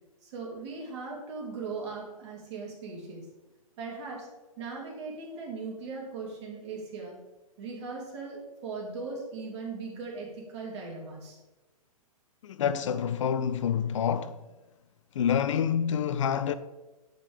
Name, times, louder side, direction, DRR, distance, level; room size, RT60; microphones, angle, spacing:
voice 1, 0.2-3.3 3.8-4.3 4.6-7.2 7.6-11.4, right 4 dB, 50° right, 2.8 m, -39 dB
voice 2, 12.4-14.4 15.2-16.5, left 8 dB, 55° left, 0.4 m, -27 dB
7.3 x 5.1 x 5.1 m
figure-of-eight pair, 115°, 19 cm